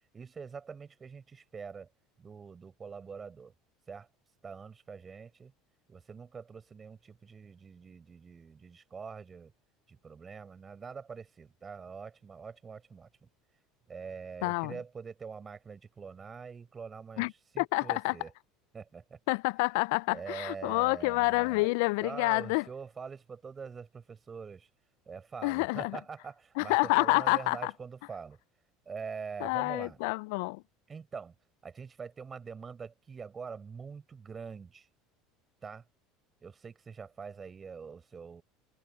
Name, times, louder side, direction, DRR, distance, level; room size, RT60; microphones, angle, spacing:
voice 1, 0.1-1.9 2.2-3.5 3.9-4.1 4.4-5.5 5.9-9.5 9.9-13.3 13.9-17.3 17.5-18.3 18.7-19.2 20.1-21.7 22.0-24.7 25.1-28.4 28.9-30.0 30.9-31.3 31.6-34.9 35.6-35.8 36.4-38.4, right 5 dB, 30° right, 4.5 m, -44 dB
voice 2, 14.4-14.8 17.2-17.3 17.6-18.1 19.3-22.7 25.4-26.0 26.6-27.7 29.4-30.6, left 28 dB, 70° left, 0.3 m, -28 dB
hypercardioid pair, 80°, 0 cm